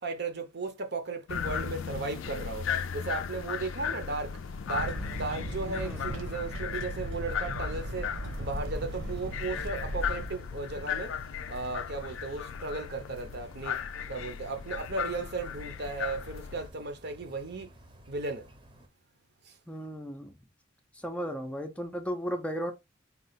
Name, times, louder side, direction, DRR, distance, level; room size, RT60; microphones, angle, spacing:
voice 1, 0.0-2.7 2.9-4.4 4.6-8.1 8.4-11.1 11.5-13.8 14.1-17.7 18.1-18.5 19.5-19.6, right 3 dB, 55° right, 0.8 m, -35 dB
sound 1, 1.3-16.7, left 8 dB, 70° left, 0.4 m, -37 dB
sound 2, 4.2-18.9, equal, 25° right, 0.8 m, -54 dB
sound 3, 4.7-10.3, right 1 dB, 75° right, 1.3 m, -37 dB
voice 2, 5.6-6.0 19.7-20.3 20.9-22.7, equal, 5° left, 0.5 m, -35 dB
4.3 x 2.4 x 4.0 m
head